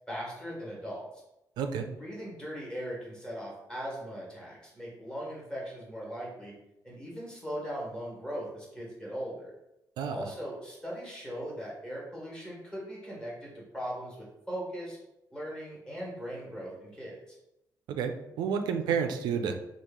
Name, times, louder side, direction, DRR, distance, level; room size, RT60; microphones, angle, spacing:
voice 1, 0.1-1.2 1.8-6.5 6.8-9.5 10.1-15.0 15.3-17.4, equal, 10° left, -4 dB, 1.4 m, -39 dB
voice 2, 10.0-10.3 17.9-19.5, right 6 dB, 85° right, 7 dB, 0.4 m, -30 dB
3.0 x 2.4 x 3.5 m, 0.88 s
cardioid pair, 110°, 7 cm